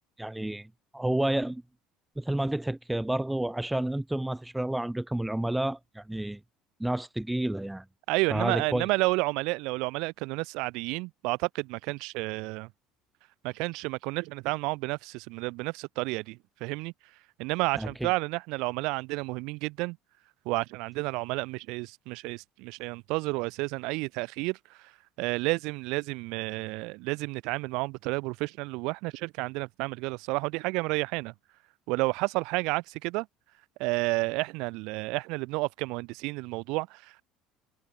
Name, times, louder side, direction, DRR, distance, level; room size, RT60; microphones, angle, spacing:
voice 1, 0.2-1.6 2.2-6.4 6.8-7.8 8.3-8.9 17.7-18.1, right 1 dB, 5° right, 0.4 m, -30 dB
voice 2, 8.1-12.7 13.4-16.9 17.4-20.0 20.5-24.6 25.2-31.3 31.9-33.3 33.8-37.2, right 25 dB, 65° right, 0.6 m, -31 dB
hypercardioid pair, 65°, 0 cm